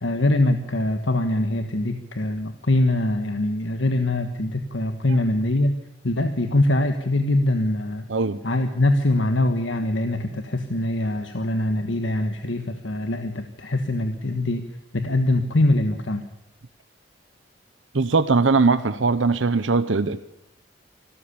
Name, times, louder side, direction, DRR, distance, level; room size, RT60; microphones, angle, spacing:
voice 1, 0.0-5.7 6.0-8.0 8.4-14.7 14.9-16.2, left 1 dB, 80° left, 7 dB, 1.4 m, -23 dB
voice 2, 17.9-20.2, right 4 dB, 90° right, 12 dB, 0.8 m, -20 dB
25.5 x 13.5 x 8.5 m, 0.82 s
head